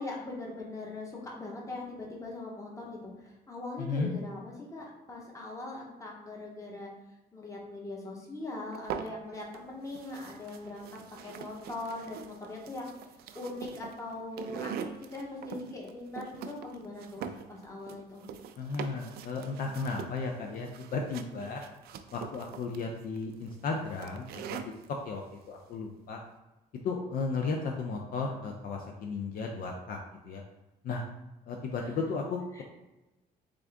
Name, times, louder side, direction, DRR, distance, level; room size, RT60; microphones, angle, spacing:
voice 1, 0.0-6.9 7.3-10.9 11.2-12.9 13.3-14.8 15.1-18.2 19.4-19.6 31.8-31.9 32.5-32.6, left 2 dB, 20° left, -2 dB, 1.2 m, -41 dB
voice 2, 3.8-4.1 18.6-21.6 22.1-24.4 25.1-25.2 25.5-26.2 26.8-30.0 30.2-30.4 30.8-31.0 31.5-32.4, left 4 dB, 60° left, 1 dB, 0.5 m, -34 dB
sound 1, 8.7-9.6 9.9-24.9, right 7 dB, 65° right, 0.4 m, -43 dB
3.7 x 3.5 x 3.5 m, 1.0 s
cardioid pair, 110°, 17 cm